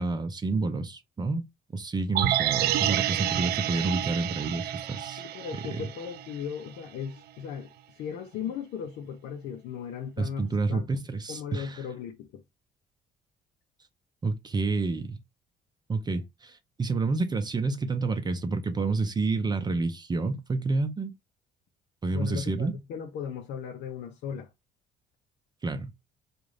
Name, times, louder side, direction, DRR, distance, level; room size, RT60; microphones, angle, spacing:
voice 1, 0.0-1.4 1.7-5.2 5.7-5.9 10.2-11.9 14.2-15.2 15.9-21.1 22.0-22.7 25.6-25.9, right 3 dB, 25° right, 0.6 m, -29 dB
sound 1, 2.1-6.3 6.7-6.8, right 12 dB, 70° right, 0.4 m, -29 dB
voice 2, 5.2-10.9 11.3-12.4 22.1-24.5, left 7 dB, 80° left, 0.8 m, -37 dB
3.7 x 2.5 x 3.2 m
cardioid pair, 110°, 17 cm